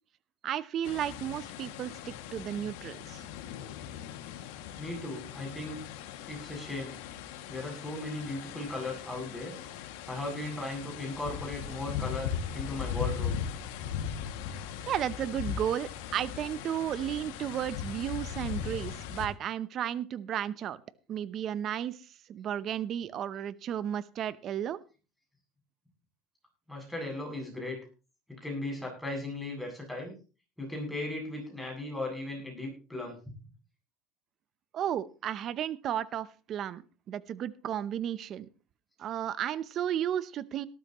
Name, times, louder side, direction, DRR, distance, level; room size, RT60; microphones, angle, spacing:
voice 1, 0.4-3.3 14.9-20.8 21.1-22.0 22.3-24.8 34.7-38.5 39.0-40.7, right 10 dB, 40° right, 17 dB, 0.7 m, -33 dB
sound 1, 0.8-19.3, left 8 dB, 80° left, 2.1 m, -39 dB
voice 2, 4.8-5.8 6.3-7.0 7.5-9.5 10.1-13.4 26.7-27.8 28.4-30.1 30.6-33.2, left 2 dB, ahead, -1 dB, 7.9 m, -37 dB
18.5 x 13.0 x 3.0 m, 0.34 s
supercardioid pair, 140°, 0 cm